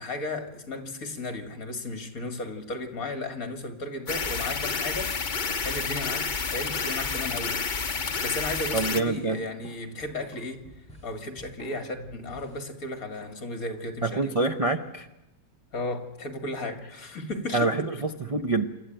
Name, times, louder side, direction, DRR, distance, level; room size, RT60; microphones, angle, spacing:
voice 1, 0.0-7.6 8.0-10.6 11.0-14.3 15.7-17.9, left 2 dB, 55° left, 2.5 m, -35 dB
sound 1, 4.1-9.0, left 5 dB, 35° left, 1.0 m, -29 dB
voice 2, 8.7-9.4 14.0-15.1 17.5-18.6, right 3 dB, 35° right, 0.6 m, -26 dB
sound 2, 8.8-12.6, left 1 dB, 5° left, 7.2 m, -50 dB
27.5 x 13.0 x 9.1 m
omnidirectional pair, 1.8 m